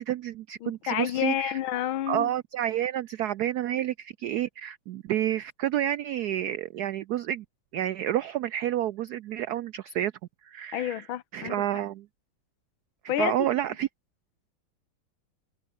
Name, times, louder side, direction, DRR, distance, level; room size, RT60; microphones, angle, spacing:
voice 1, 0.0-1.6 2.1-7.4 7.7-10.1 10.4-11.0 11.3-12.1 13.2-13.9, right 12 dB, 90° right, 0.8 m, -29 dB
voice 2, 0.6-2.3 10.7-11.6 13.1-13.3, left 12 dB, 75° left, 1.7 m, -29 dB
omnidirectional pair, 2.3 m